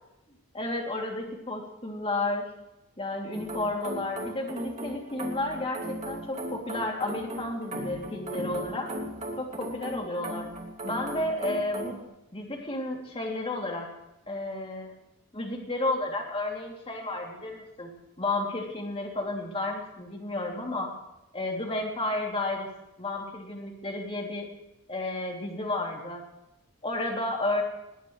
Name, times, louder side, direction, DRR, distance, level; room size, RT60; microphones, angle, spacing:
voice 1, 0.5-2.4 3.0-8.9 9.4-10.5 10.8-12.0 12.3-13.9 14.3-14.9 15.3-17.9 18.2-20.9 21.3-22.7 23.0-24.5 24.9-26.2 26.8-27.6, left 2 dB, 25° left, 0 dB, 3.0 m, -32 dB
sound 1, 3.3-12.0, right 1 dB, 30° right, 2.6 m, -37 dB
20.0 x 19.5 x 3.3 m, 0.90 s
head